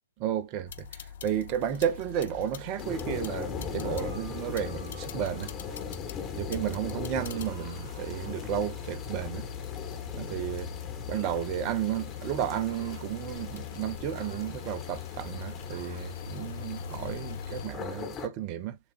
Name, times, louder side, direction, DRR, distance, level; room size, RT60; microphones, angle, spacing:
voice 1, 0.2-5.5 6.4-9.5 10.1-10.7 11.1-18.8, right 10 dB, 30° right, 0.6 m, -33 dB
sound 1, 0.7-17.7, left 10 dB, 50° left, 0.6 m, -42 dB
sound 2, 2.8-18.3, left 6 dB, 20° left, 1.1 m, -40 dB
sound 3, 3.8-6.1 7.2-9.5 11.1-11.5 12.7-13.1 14.1-14.6 15.7-16.1, right 3 dB, 45° right, 1.8 m, -53 dB
6.9 x 2.3 x 2.3 m
figure-of-eight pair, 120°, 0 cm